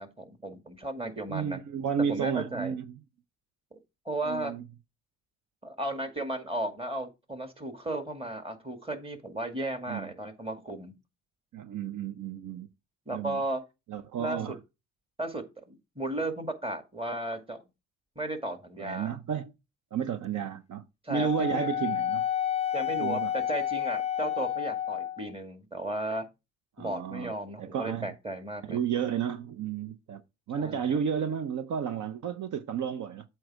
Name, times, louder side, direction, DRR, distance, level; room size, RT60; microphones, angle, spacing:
voice 1, 0.0-1.6 2.1-2.8 3.7-3.8 4.1-4.5 5.6-10.9 13.1-13.6 14.2-14.6 15.2-17.6 18.2-19.1 21.0-21.7 22.7-26.3 26.8-28.8 30.6-31.0, right 1 dB, 15° right, 2.0 m, -35 dB
voice 2, 1.3-3.0 4.2-4.6 9.9-10.1 11.5-12.7 13.1-13.4 13.9-14.6 18.8-19.5 19.9-20.8 21.1-22.2 23.0-23.3 26.8-27.3 27.6-28.1 28.7-30.2 30.5-33.2, right 7 dB, 60° right, 0.7 m, -32 dB
Wind instrument woodwind instrument, 21.1-25.3, left 10 dB, 20° left, 0.3 m, -30 dB
7.8 x 4.6 x 4.7 m
cardioid pair, 70°, 33 cm